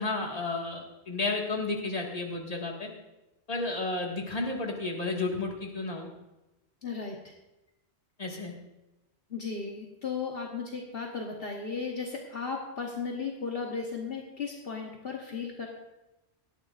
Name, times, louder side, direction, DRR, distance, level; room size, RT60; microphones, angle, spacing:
voice 1, 0.0-2.9 3.5-6.1 8.2-8.5, left 3 dB, 35° left, 0 dB, 2.0 m, -32 dB
voice 2, 6.8-7.3 9.3-15.7, left 5 dB, 60° left, -1 dB, 1.5 m, -35 dB
18.0 x 13.0 x 2.5 m, 0.98 s
omnidirectional pair, 1.1 m